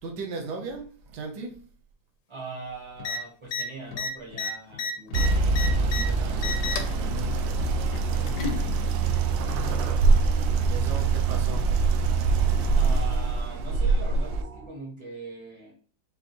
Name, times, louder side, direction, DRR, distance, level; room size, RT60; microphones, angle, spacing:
voice 1, 0.0-1.6 7.0-7.3 10.6-11.6, right 3 dB, 70° right, 1 dB, 1.4 m, -36 dB
voice 2, 2.3-7.2 8.2-9.6 12.7-15.8, right 3 dB, 25° right, 0 dB, 0.7 m, -42 dB
sound 1, 3.0-3.2 3.5-3.6 3.9-6.0 6.4-6.9 7.9-8.6 9.7-9.8, left 4 dB, 75° left, 1.2 m, -31 dB
sound 2, 5.1-14.4, right 4 dB, 90° right, 1.3 m, -24 dB
sound 3, 7.5-14.7, right 3 dB, 50° right, 1.2 m, -37 dB
5.5 x 2.6 x 3.0 m, 0.43 s
omnidirectional pair, 2.0 m